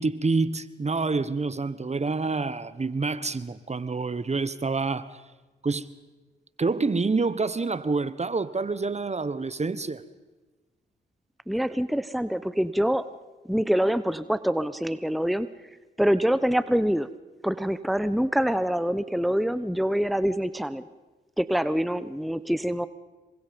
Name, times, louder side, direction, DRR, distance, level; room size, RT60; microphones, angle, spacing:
voice 1, 0.0-5.1 5.6-5.9 6.6-10.0, right 3 dB, 35° right, 1.2 m, -27 dB
voice 2, 11.5-13.1 13.5-15.5 16.0-17.1 17.4-20.9 21.4-22.9, equal, ahead, 1.0 m, -25 dB
27.0 x 24.0 x 5.3 m
supercardioid pair, 50°, 19 cm